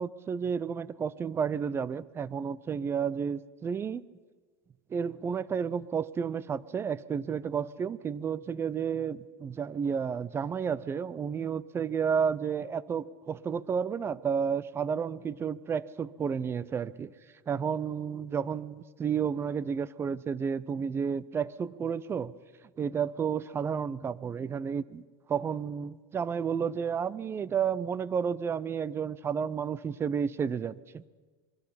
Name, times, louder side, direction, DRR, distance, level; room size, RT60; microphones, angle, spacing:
voice 1, 0.0-4.0 4.9-17.1 17.5-22.3 22.8-25.0 25.3-31.1, right 7 dB, 20° right, 19 dB, 0.7 m, -31 dB
27.0 x 21.0 x 5.9 m, 1.4 s
supercardioid pair, 125°, 11 cm